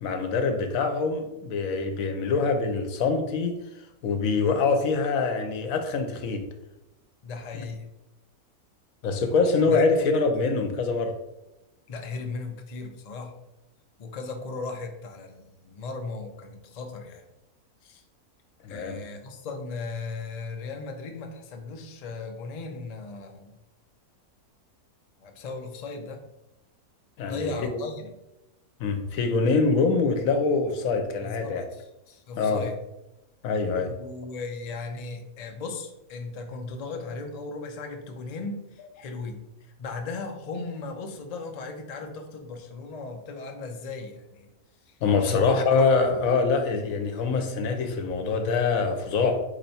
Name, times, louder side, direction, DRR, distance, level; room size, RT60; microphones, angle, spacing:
voice 1, 0.0-3.6 4.0-6.4 7.5-7.6 9.0-11.1 18.6-19.0 27.2-27.5 28.8-31.6 32.4-32.6 33.4-33.9 45.0-49.4, left 4 dB, 70° left, 6 dB, 1.0 m, -24 dB
voice 2, 7.2-7.9 9.6-9.8 11.9-13.3 14.0-17.2 17.8-18.0 18.7-23.6 25.2-26.2 27.2-28.0 31.2-31.9 32.3-32.8 33.9-44.5 44.9-45.0 45.2-45.5, left 3 dB, 90° left, 4 dB, 0.3 m, -37 dB
4.4 x 3.0 x 4.1 m, 0.95 s
omnidirectional pair, 1.6 m